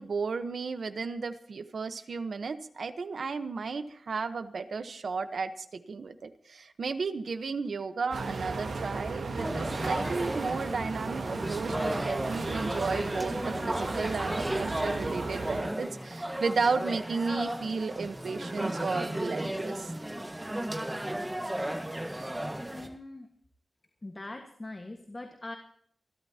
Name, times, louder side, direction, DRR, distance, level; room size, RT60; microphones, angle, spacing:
voice 1, 0.0-19.9, right 4 dB, 60° right, 10 dB, 1.1 m, -33 dB
sound 1, 8.1-15.6, right 3 dB, 85° right, 3.2 m, -36 dB
sound 2, 9.4-22.9, right 1 dB, 10° right, 1.6 m, -34 dB
voice 2, 22.7-23.3 24.0-25.6, left 2 dB, 20° left, 3 dB, 1.6 m, -42 dB
27.0 x 13.0 x 2.9 m, 0.64 s
wide cardioid pair, 170°, 0 cm